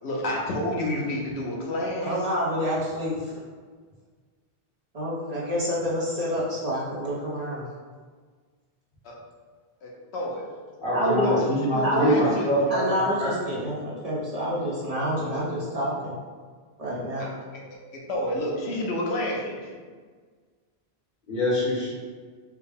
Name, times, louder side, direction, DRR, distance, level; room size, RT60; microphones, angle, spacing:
voice 1, 0.0-2.3 9.0-9.1 9.8-10.4 11.0-12.5 17.5-17.6 17.9-19.8, left 1 dB, 80° left, -2 dB, 1.0 m, -29 dB
voice 2, 2.0-3.2 4.9-7.6 10.9-11.3 11.8-12.1 12.7-16.1 16.8-17.3, equal, 40° right, -7 dB, 0.8 m, -27 dB
voice 3, 10.8-13.3 21.3-21.9, equal, 55° left, -8 dB, 1.5 m, -25 dB
4.6 x 2.1 x 3.4 m, 1.6 s
omnidirectional pair, 1.1 m